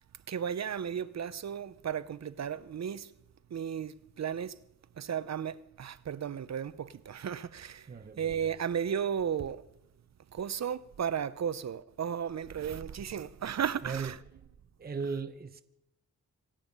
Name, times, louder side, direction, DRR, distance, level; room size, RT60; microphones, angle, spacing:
voice 1, 0.3-3.1 3.5-4.6 5.0-7.9 8.2-9.6 10.3-14.2 15.0-15.2, right 8 dB, 55° right, 0.8 m, -34 dB
voice 2, 7.9-8.3 13.8-14.1 14.8-15.6, right 5 dB, 30° right, 0.9 m, -36 dB
26.0 x 9.1 x 5.5 m
cardioid pair, 85°, 33 cm